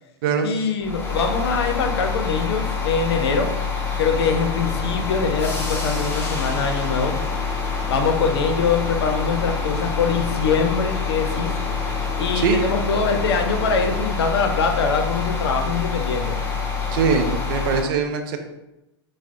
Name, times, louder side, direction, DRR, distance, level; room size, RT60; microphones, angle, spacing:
voice 1, 0.4-3.6 4.0-7.2 7.9-11.5 12.2-16.4, left 5 dB, 65° left, 6 dB, 0.5 m, -23 dB
sound 1, 0.8-17.8, left 5 dB, 15° left, 0.6 m, -26 dB
sound 2, 4.0-14.0, equal, 85° right, 0.8 m, -36 dB
voice 2, 16.9-18.4, right 6 dB, 50° right, 6 dB, 0.5 m, -22 dB
4.4 x 2.0 x 2.5 m, 0.94 s
figure-of-eight pair, 100°, 14 cm